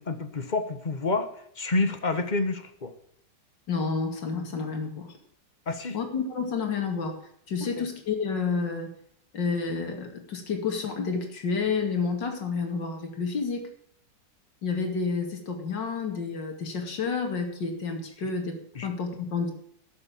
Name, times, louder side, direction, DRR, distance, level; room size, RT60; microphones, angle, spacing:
voice 1, 0.0-2.9 5.7-6.0 18.7-18.9, left 3 dB, 30° left, 9 dB, 1.2 m, -28 dB
voice 2, 3.7-5.1 5.9-7.2 7.5-8.9 9.3-13.6 14.6-19.5, left 5 dB, 85° left, 4 dB, 3.0 m, -30 dB
12.0 x 7.0 x 8.4 m, 0.66 s
omnidirectional pair, 1.9 m